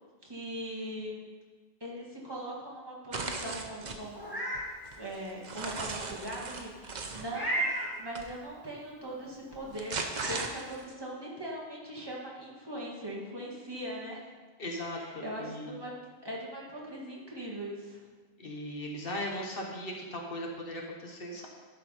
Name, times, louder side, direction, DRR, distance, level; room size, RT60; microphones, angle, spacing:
voice 1, 0.2-1.2 1.8-4.2 4.9-7.7 8.0-14.2 14.9-15.9 16.2-18.0, right 1 dB, 25° right, -5 dB, 1.8 m, -40 dB
sound 1, 3.1-4.0 4.5-7.3 8.1-8.3 9.5-10.9, right 4 dB, 50° right, 0.8 m, -37 dB
Meow, 4.1-4.6 5.1-5.2 7.3-7.9 9.5-9.6 10.1-10.4, right 1 dB, 20° left, 1.7 m, -32 dB
voice 2, 14.6-15.8 18.4-21.5, left 1 dB, 65° left, 1 dB, 1.3 m, -38 dB
11.5 x 4.6 x 5.4 m, 1.4 s
omnidirectional pair, 1.0 m